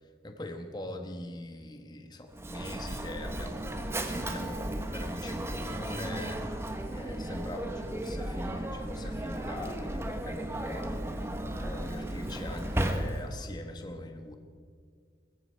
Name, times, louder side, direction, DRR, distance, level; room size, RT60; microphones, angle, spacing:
voice 1, 0.2-14.4, left 1 dB, 25° left, 5 dB, 1.3 m, -42 dB
Mechanisms, 2.3-13.5, right 1 dB, 15° right, 1.1 m, -35 dB
21.0 x 14.5 x 4.5 m, 2.1 s
head